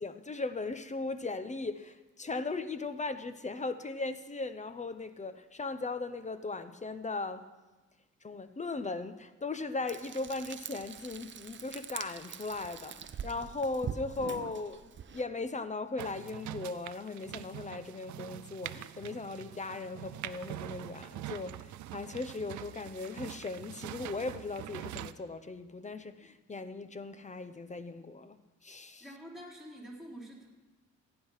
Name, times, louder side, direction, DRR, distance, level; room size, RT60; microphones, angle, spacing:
voice 1, 0.0-7.4 8.2-28.4 28.6-29.0, left 3 dB, 25° left, 0.8 m, -38 dB
Frying (food), 9.9-15.2, right 7 dB, 40° right, 0.7 m, -43 dB
sound 1, 16.0-25.1, right 13 dB, 75° right, 0.6 m, -44 dB
voice 2, 29.0-30.5, equal, ahead, 4.0 m, -47 dB
15.0 x 9.9 x 5.7 m
cardioid pair, 90°, 30 cm